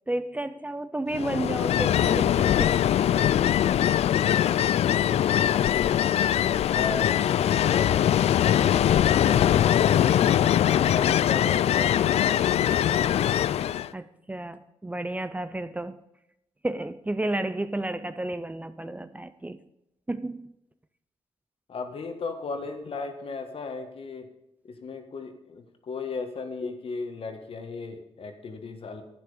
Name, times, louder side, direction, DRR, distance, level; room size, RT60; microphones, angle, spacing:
voice 1, 0.1-2.7 13.9-16.0 16.6-19.6 20.1-20.5, right 1 dB, 15° right, 0.6 m, -32 dB
Ocean, 1.1-13.9, left 10 dB, 75° left, 0.4 m, -22 dB
voice 2, 6.7-13.2 21.7-24.3 24.6-29.0, left 4 dB, 60° left, 1.7 m, -36 dB
10.5 x 9.3 x 5.1 m
cardioid pair, 95°, 11 cm